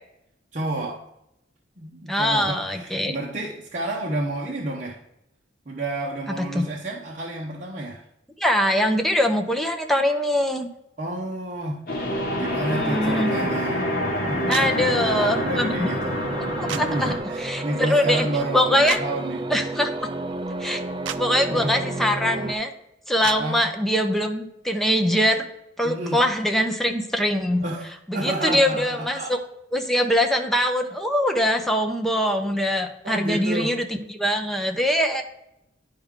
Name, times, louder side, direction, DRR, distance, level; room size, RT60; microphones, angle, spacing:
voice 1, 0.5-1.0 1.8-5.0 5.7-8.0 11.0-13.9 14.2-16.2 16.7-19.5 21.5-21.8 23.2-23.6 25.8-26.2 27.6-27.9 28.1-29.3 33.0-33.7, right 1 dB, 40° right, -3 dB, 0.9 m, -30 dB
voice 2, 2.1-3.2 6.3-6.6 8.4-10.7 12.7-13.3 14.5-15.9 16.6-18.3 18.5-19.0 19.5-19.9 20.6-20.8 21.2-22.7 23.1-25.5 25.8-27.6 28.1-29.4 29.7-35.2, equal, ahead, 3 dB, 0.8 m, -23 dB
sound 1, 11.9-17.2, left 1 dB, 55° left, 1.8 m, -27 dB
sound 2, 14.5-14.7 16.7-16.8 18.9-19.0 21.0-21.2 23.2-23.4, right 10 dB, 90° right, 0.4 m, -30 dB
sound 3, 15.2-22.5, right 2 dB, 25° right, 0.4 m, -31 dB
10.5 x 4.7 x 3.7 m, 0.84 s
head